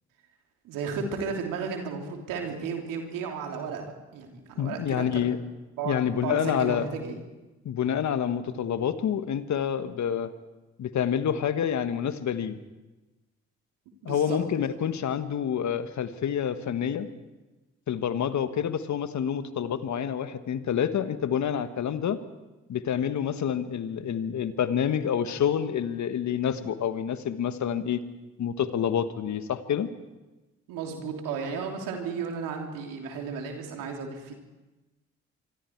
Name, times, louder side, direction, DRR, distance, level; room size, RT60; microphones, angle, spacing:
voice 1, 0.6-5.2 5.8-7.2 14.0-14.4 30.7-34.3, right 5 dB, 80° right, 2 dB, 3.3 m, -34 dB
voice 2, 4.6-5.4 5.8-6.9 7.6-10.3 10.8-12.6 14.0-17.1 17.9-22.2 22.7-28.0 28.4-29.9, left 8 dB, 60° left, 11 dB, 1.5 m, -28 dB
26.0 x 23.5 x 4.7 m, 1.1 s
hypercardioid pair, 45°, 33 cm